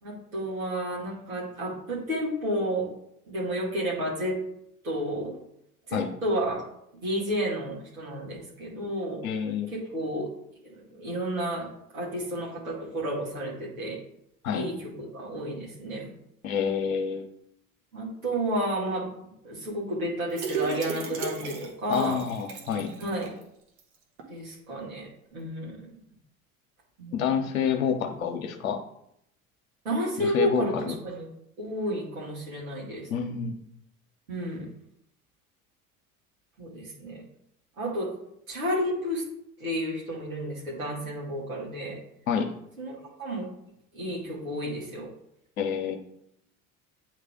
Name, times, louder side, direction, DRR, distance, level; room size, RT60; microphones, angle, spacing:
voice 1, 0.0-2.9 3.3-4.4 4.8-5.4 5.9-6.6 7.0-9.2 9.7-10.3 10.9-11.7 11.9-14.0 14.5-16.2 17.9-19.1 19.4-22.2 23.0-23.3 24.3-25.9 27.0-27.3 29.8-31.3 31.6-33.1 34.3-34.7 36.6-37.2 37.8-38.1 38.5-39.2 39.6-42.0 42.8-43.4 43.9-45.1, equal, 75° right, -6 dB, 2.3 m, -31 dB
voice 2, 9.2-9.7 14.4-14.7 16.4-17.3 21.9-22.9 27.1-28.8 30.2-30.8 33.1-33.6 42.3-42.5 45.6-46.0, left 7 dB, 70° left, 4 dB, 1.0 m, -28 dB
sound 1, 20.3-23.4 23.8-23.9 24.2-24.3, right 6 dB, 55° right, 1.4 m, -35 dB
8.8 x 3.3 x 3.7 m, 0.76 s
figure-of-eight pair, 65°, 42 cm